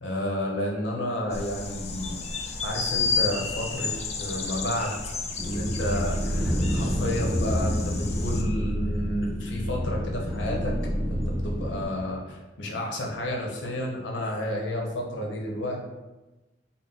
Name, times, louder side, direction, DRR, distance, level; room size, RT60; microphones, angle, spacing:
voice 1, 0.0-2.2 2.6-3.9 4.2-5.0 5.4-10.7 11.1-15.8, left 1 dB, 75° left, -1 dB, 0.8 m, -31 dB
sound 1, 1.3-8.4, left 4 dB, 35° left, 0.4 m, -32 dB
sound 2, 5.4-11.8, equal, 15° right, 0.6 m, -28 dB
4.0 x 2.0 x 3.7 m, 1.1 s
head